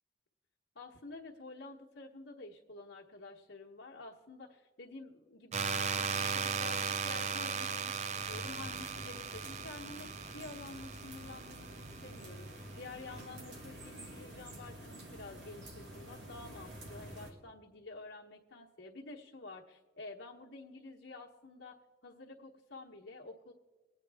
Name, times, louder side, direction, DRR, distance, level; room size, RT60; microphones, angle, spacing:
voice 1, 0.7-23.5, left 3 dB, 75° left, -3 dB, 1.1 m, -50 dB
sound 1, 5.5-12.3, right 6 dB, 35° right, 0.4 m, -37 dB
sound 2, 8.2-17.3, right 1 dB, 65° right, 1.8 m, -49 dB
22.0 x 9.0 x 3.4 m, 1.4 s
head